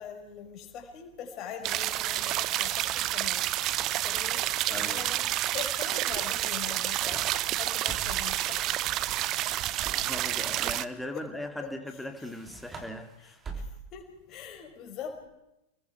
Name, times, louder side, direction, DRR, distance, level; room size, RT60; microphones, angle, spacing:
voice 1, 0.0-3.4 4.0-9.0 10.0-10.1 10.6-10.7 11.1-11.3 11.6-11.7 13.2-15.3, left 8 dB, 35° left, 3 dB, 5.7 m, -43 dB
sound 1, 1.6-10.8, right 14 dB, 35° right, 0.8 m, -29 dB
sound 2, 3.2-4.5 6.5-8.4 9.7-10.9 12.1-14.1, right 3 dB, 20° right, 3.1 m, -45 dB
voice 2, 4.7-5.0 9.5-9.7 10.0-13.4, left 1 dB, 5° left, 5 dB, 2.9 m, -39 dB
30.0 x 20.5 x 4.7 m, 0.89 s
figure-of-eight pair, 90°, 0 cm